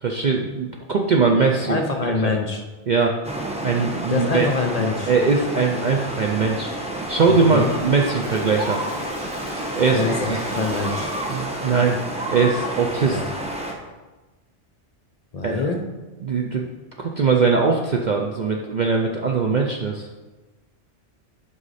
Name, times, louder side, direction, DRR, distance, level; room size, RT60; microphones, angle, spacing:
voice 1, 0.0-1.8 2.2-2.4 2.9-3.2 3.6-4.5 5.1-6.7 7.1-8.8 9.8-10.4 11.3-12.0 12.3-13.2 15.4-15.6 16.2-16.7 17.0-20.1, right 4 dB, 50° right, 1 dB, 0.6 m, -21 dB
voice 2, 1.6-2.6 4.1-5.1 7.3-7.7 9.9-11.1 13.0-13.3 15.3-15.8, left 3 dB, 40° left, 4 dB, 0.6 m, -25 dB
sound 1, 3.2-13.7, right 1 dB, 5° right, 0.8 m, -30 dB
Toilet flush, 7.5-11.9, equal, 30° right, 2.3 m, -38 dB
7.9 x 5.6 x 4.1 m, 1.2 s
omnidirectional pair, 1.2 m